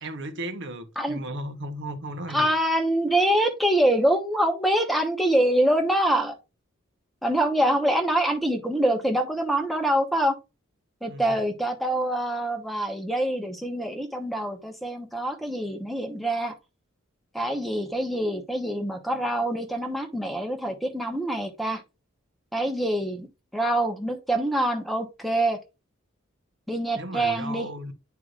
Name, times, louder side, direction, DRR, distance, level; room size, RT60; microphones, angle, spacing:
voice 1, 0.0-2.5 11.1-11.4 26.9-27.9, right 1 dB, 60° right, 1.0 m, -35 dB
voice 2, 2.3-6.3 7.2-10.3 11.0-16.5 17.3-21.8 22.5-23.3 23.5-25.6 26.7-27.7, right 1 dB, ahead, 1.1 m, -25 dB
9.2 x 4.8 x 2.5 m
head